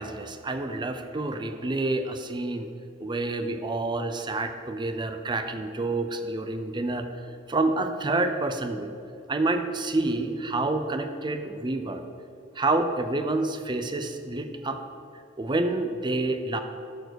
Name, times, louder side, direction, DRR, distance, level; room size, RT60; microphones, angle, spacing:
voice 1, 0.0-2.7 3.0-7.1 7.5-8.9 9.3-12.0 12.6-14.8 15.4-16.6, right 2 dB, 25° right, 7 dB, 0.5 m, -28 dB
12.5 x 4.7 x 6.3 m, 2.5 s
head